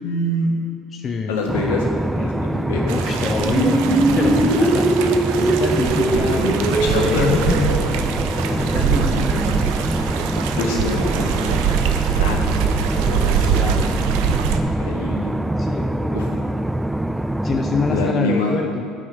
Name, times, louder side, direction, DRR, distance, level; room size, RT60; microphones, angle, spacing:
voice 1, 0.0-0.5 1.3-1.9 2.1-2.9 6.1-7.3 8.9-9.0 10.6-11.8 12.1-15.3 16.1-16.3 17.9-18.5, left 2 dB, 75° left, 1 dB, 1.7 m, -26 dB
voice 2, 0.9-1.4 2.9-3.8 4.1-4.9 5.3-6.4 7.1-7.8 8.5-9.6 13.0-13.9 15.6-16.3 17.1-18.8, left 5 dB, 35° left, 4 dB, 0.7 m, -25 dB
sound 1, 1.5-18.1, right 1 dB, 5° right, 0.3 m, -24 dB
sound 2, 2.9-14.6, right 8 dB, 70° right, 0.7 m, -24 dB
sound 3, 3.3-8.7, right 2 dB, 25° right, 1.9 m, -21 dB
8.6 x 6.1 x 8.0 m, 2.5 s
hypercardioid pair, 65°, 0 cm